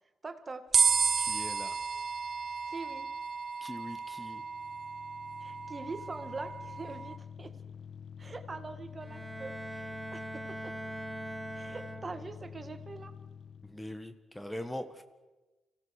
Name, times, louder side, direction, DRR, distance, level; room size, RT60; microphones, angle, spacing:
voice 1, 0.2-0.6 2.7-3.1 5.4-7.5 8.2-10.7 11.5-13.1, right 3 dB, 35° right, 8 dB, 1.8 m, -43 dB
sound 1, 0.7-7.2, right 5 dB, 50° right, 0.9 m, -32 dB
voice 2, 1.2-1.8 3.6-4.4 13.6-15.0, left 1 dB, 10° left, 9 dB, 1.5 m, -41 dB
sound 2, 4.2-14.0, left 7 dB, 70° left, 0.7 m, -48 dB
Bowed string instrument, 9.0-12.5, right 1 dB, 10° right, 0.7 m, -42 dB
25.0 x 17.0 x 6.6 m, 1.1 s
cardioid pair, 75°, 0 cm